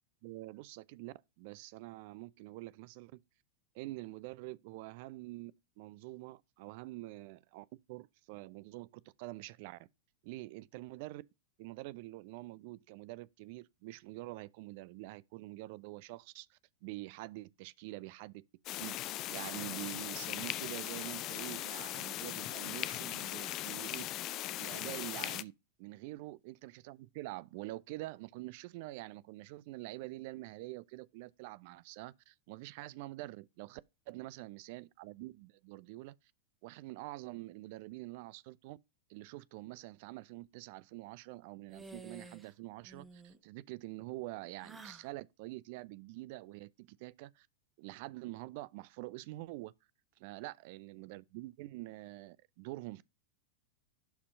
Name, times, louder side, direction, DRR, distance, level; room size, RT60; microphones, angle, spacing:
voice 1, 0.2-3.2 3.7-5.5 5.8-9.9 10.2-11.2 11.6-18.4 18.8-24.1 24.6-25.5 25.8-33.8 34.1-36.2 36.6-38.8 39.1-47.5 47.8-49.7 50.2-53.0, right 19 dB, 50° right, 0.4 m, -46 dB
sound 1, 18.7-25.4, left 15 dB, 35° left, 0.5 m, -39 dB
sound 2, 41.7-42.5 42.8-43.4 44.6-45.1, right 3 dB, 10° right, 1.3 m, -52 dB
11.0 x 4.2 x 2.6 m
figure-of-eight pair, 90°, 0 cm